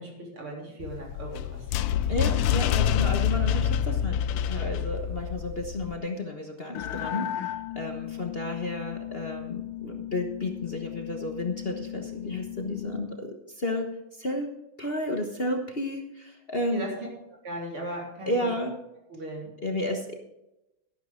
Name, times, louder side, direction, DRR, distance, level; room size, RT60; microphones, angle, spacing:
voice 1, 0.0-1.6 16.7-16.9 17.4-18.5 19.1-19.5, right 1 dB, 85° right, -2 dB, 4.6 m, -37 dB
sound 1, 0.8-6.0, left 9 dB, 75° left, 1.2 m, -26 dB
voice 2, 2.1-14.5 14.8-16.8 18.3-18.7 19.6-20.1, left 1 dB, 35° left, 3 dB, 1.2 m, -32 dB
sound 2, 6.7-13.1, left 12 dB, 90° left, 1.6 m, -37 dB
12.5 x 12.0 x 3.8 m, 0.91 s
omnidirectional pair, 2.3 m